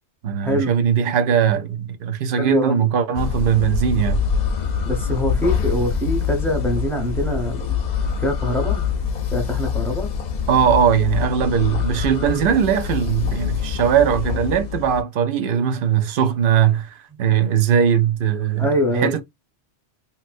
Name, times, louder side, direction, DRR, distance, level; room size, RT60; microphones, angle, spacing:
voice 1, 0.2-4.2 10.5-19.2, right 8 dB, 60° right, 0.6 m, -20 dB
voice 2, 2.4-2.9 4.8-7.7 8.2-8.8 9.3-10.1 18.6-19.2, equal, ahead, 0.8 m, -24 dB
sound 1, 3.1-15.0, left 6 dB, 45° left, 0.6 m, -25 dB
3.0 x 2.8 x 2.4 m
omnidirectional pair, 1.2 m